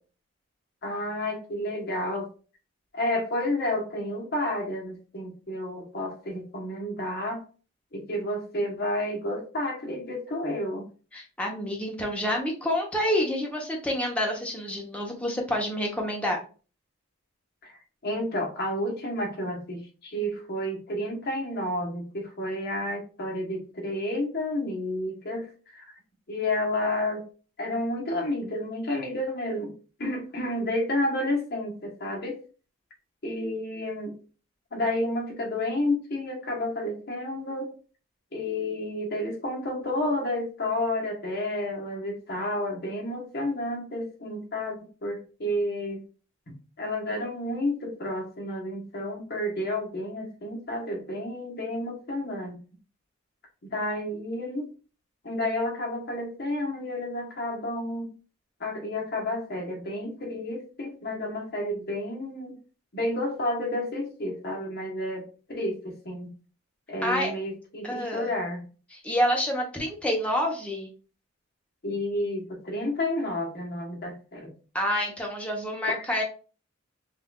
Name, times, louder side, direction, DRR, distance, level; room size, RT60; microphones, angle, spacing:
voice 1, 0.8-2.3 2.9-7.4 7.9-10.9 17.6-17.8 18.0-25.9 26.3-27.2 27.6-29.7 30.0-32.4 33.2-34.2 34.7-37.7 38.3-46.0 46.5-52.6 53.6-54.7 55.2-58.1 58.6-62.6 62.9-66.3 66.9-68.6 71.8-74.5 75.9-76.0, left 1 dB, 50° left, 0 dB, 1.1 m, -31 dB
voice 2, 11.1-16.4 67.0-67.3 67.8-68.3 68.9-70.9 74.7-76.2, equal, 5° left, 0 dB, 0.8 m, -28 dB
5.6 x 2.5 x 2.3 m, 0.36 s
head